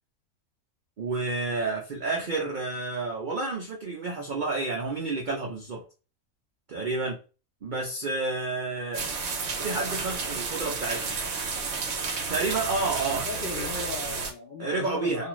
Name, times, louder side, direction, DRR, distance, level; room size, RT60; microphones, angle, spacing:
voice 1, 1.0-5.8 6.7-7.2 7.6-9.1 9.6-11.1 12.3-13.3 13.5-13.7 14.6-15.3, right 3 dB, 80° right, 0 dB, 0.4 m, -30 dB
sound 1, 8.9-14.3, right 4 dB, 65° right, 0.9 m, -31 dB
voice 2, 13.0-15.3, left 4 dB, 60° left, 0 dB, 0.5 m, -37 dB
2.5 x 2.4 x 3.0 m, 0.34 s
omnidirectional pair, 1.5 m